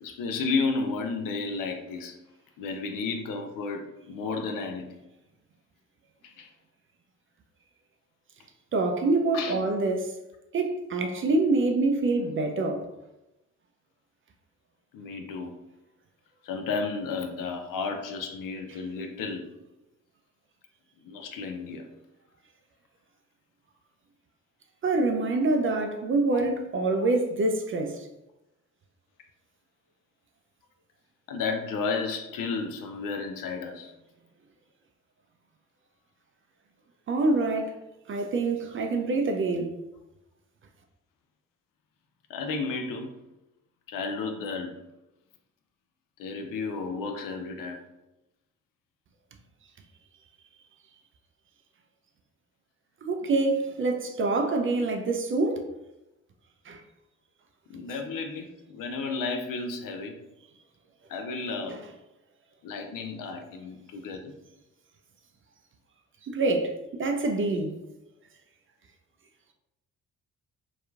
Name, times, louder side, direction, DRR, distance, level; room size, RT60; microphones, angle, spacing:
voice 1, 0.0-2.2 2.6-5.0 6.2-6.5 9.3-9.6 14.9-15.5 16.4-19.5 21.0-21.9 27.0-27.1 31.3-33.9 42.3-43.1 43.9-44.8 46.2-47.9 57.7-60.2 61.1-61.8 62.6-64.3, left 4 dB, 60° left, 0.5 m, -32 dB
voice 2, 8.7-10.1 10.5-12.9 24.8-28.1 37.1-37.8 38.1-39.8 53.0-55.7 56.7-56.8 61.6-61.8 66.2-67.8, right 3 dB, 35° right, 0.4 m, -26 dB
2.8 x 2.3 x 2.3 m
hypercardioid pair, 45°, 38 cm